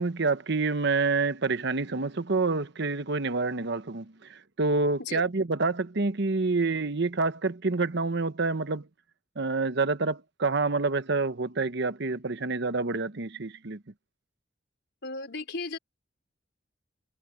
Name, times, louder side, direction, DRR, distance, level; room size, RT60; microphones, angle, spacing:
voice 1, 0.0-8.9 9.4-13.8, right 3 dB, 65° right, 1.1 m, -27 dB
voice 2, 15.0-15.8, left 3 dB, 65° left, 4.7 m, -35 dB
head